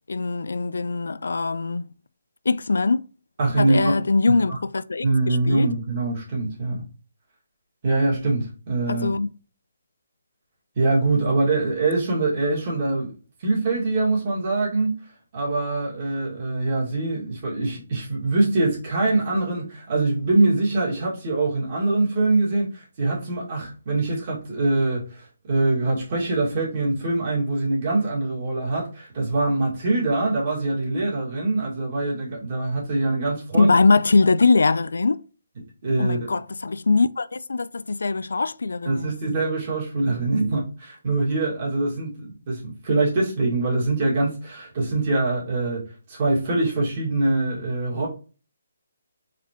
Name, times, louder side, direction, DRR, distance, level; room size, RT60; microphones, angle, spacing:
voice 1, 0.1-1.9 2.5-3.0 3.6-5.7 8.9-9.3 33.5-35.2 36.0-39.1, left 3 dB, 85° left, 0.3 m, -22 dB
voice 2, 3.4-4.0 4.3-4.6 5.0-6.9 7.8-9.1 10.8-13.1 13.4-14.9 15.3-33.7 35.8-36.2 38.9-45.8 46.1-48.1, right 2 dB, 30° right, 2.1 m, -23 dB
4.2 x 4.0 x 3.0 m
hypercardioid pair, 175°, 0 cm